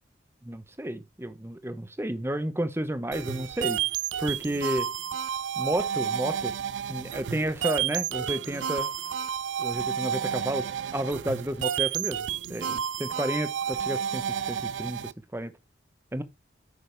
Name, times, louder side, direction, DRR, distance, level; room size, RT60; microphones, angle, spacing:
voice 1, 0.4-3.8 4.2-4.9 5.6-6.5 6.9-8.9 9.6-12.2 12.5-15.5 16.1-16.2, right 1 dB, 15° right, 0.9 m, -31 dB
sound 1, 3.1-15.1, right 8 dB, 90° right, 0.4 m, -31 dB
9.5 x 6.3 x 3.4 m
head